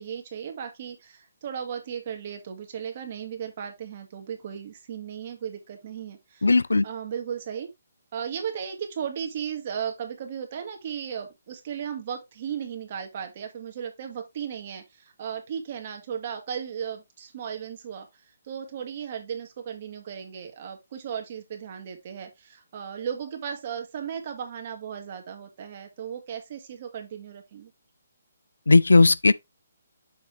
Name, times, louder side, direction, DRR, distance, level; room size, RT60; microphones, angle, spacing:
voice 1, 0.0-6.6 6.8-7.7 8.1-18.1 18.4-27.7, right 8 dB, 45° right, 2.0 m, -36 dB
voice 2, 6.4-6.8 28.7-29.3, left 3 dB, 85° left, 0.5 m, -17 dB
6.8 x 5.0 x 3.3 m
figure-of-eight pair, 145°, 0 cm